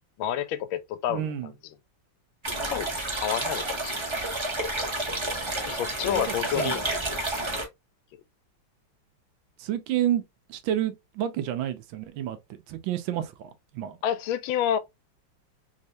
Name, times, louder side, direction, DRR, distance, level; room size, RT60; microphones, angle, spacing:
voice 1, 0.2-1.3 2.5-2.9 3.2-4.1 5.7-6.8 14.0-14.8, left 10 dB, 85° left, 1.4 m, -29 dB
voice 2, 1.1-1.5 6.1-6.2 6.5-6.7 9.6-10.2 10.5-14.0, right 11 dB, 80° right, 1.4 m, -30 dB
sound 1, 2.4-7.6, right 2 dB, 30° right, 0.5 m, -30 dB
3.6 x 3.2 x 2.6 m
omnidirectional pair, 2.2 m